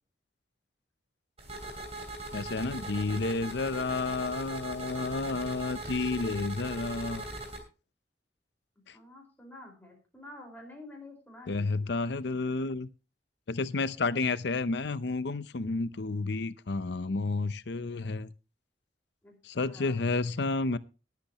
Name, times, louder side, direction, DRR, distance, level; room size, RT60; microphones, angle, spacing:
sound 1, 1.4-7.6, right 1 dB, 35° right, 3.0 m, -40 dB
voice 1, 2.3-7.3 8.9-9.0 11.5-12.9 13.5-18.3 19.4-20.8, left 3 dB, 70° left, 0.7 m, -31 dB
voice 2, 8.9-11.8 19.2-19.3 19.6-20.0, left 2 dB, 10° left, 4.9 m, -49 dB
20.0 x 8.6 x 3.0 m
head